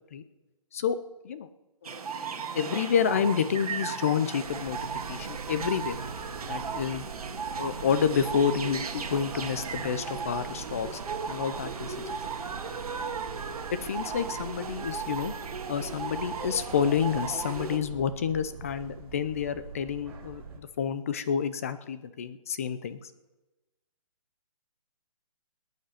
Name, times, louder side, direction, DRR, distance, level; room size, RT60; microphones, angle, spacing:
voice 1, 1.8-4.8 5.1-6.0 6.5-7.1 7.6-11.0 11.3-12.2 13.7-15.3 15.7-23.1, left 7 dB, 25° left, 13 dB, 0.5 m, -29 dB
sound 1, 1.8-17.8, right 5 dB, 70° right, 1.9 m, -36 dB
sound 2, 4.4-20.6, right 6 dB, 40° right, 2.5 m, -44 dB
23.5 x 9.4 x 5.8 m, 1.1 s
hypercardioid pair, 170°, 19 cm